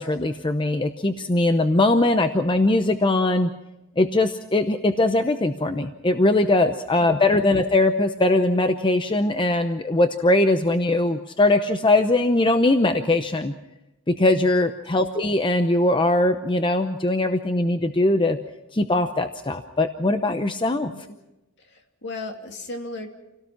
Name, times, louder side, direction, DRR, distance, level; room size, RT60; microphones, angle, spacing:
voice 1, 0.0-3.5 4.0-13.5 14.1-18.4 18.7-20.9, left 2 dB, 25° left, 8 dB, 0.7 m, -21 dB
voice 2, 21.6-23.1, left 2 dB, 55° left, 4 dB, 2.5 m, -37 dB
28.0 x 17.5 x 5.9 m, 0.96 s
head